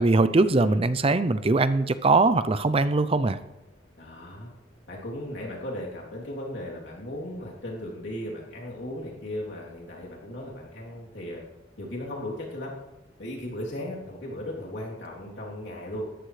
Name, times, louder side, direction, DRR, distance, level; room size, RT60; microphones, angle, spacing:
voice 1, 0.0-3.4, right 3 dB, 30° right, 12 dB, 0.5 m, -21 dB
voice 2, 0.5-0.9 4.0-4.5 4.9-11.4 11.8-12.7 13.2-16.1, left 1 dB, 70° left, -4 dB, 3.2 m, -36 dB
19.5 x 14.0 x 3.3 m, 1.0 s
head